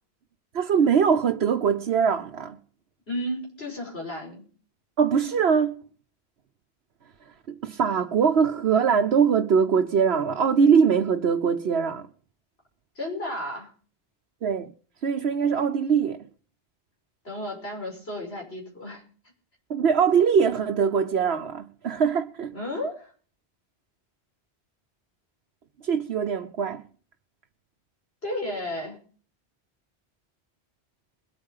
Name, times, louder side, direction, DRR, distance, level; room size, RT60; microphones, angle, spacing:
voice 1, 0.5-2.6 5.0-5.8 7.5-12.1 14.4-14.7 15.0-16.2 19.7-22.6 25.8-26.9, right 6 dB, 85° right, 1.2 m, -22 dB
voice 2, 3.1-4.4 13.0-13.7 17.2-19.0 22.5-23.1 28.2-29.0, left 1 dB, 75° left, 6.3 m, -33 dB
21.5 x 8.8 x 5.6 m
omnidirectional pair, 1.0 m